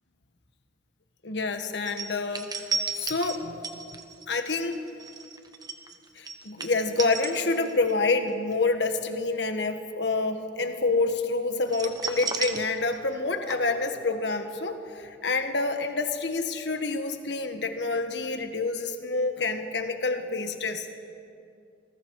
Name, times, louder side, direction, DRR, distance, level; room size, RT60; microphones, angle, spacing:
voice 1, 1.2-2.7 2.9-3.6 4.3-4.8 6.1-20.9, left 3 dB, 70° left, 6 dB, 1.5 m, -28 dB
sound 1, 1.9-7.9 8.3-8.5 11.7-13.2 13.5-13.6, right 5 dB, 20° right, 1.3 m, -34 dB
27.5 x 20.5 x 4.8 m, 2.4 s
head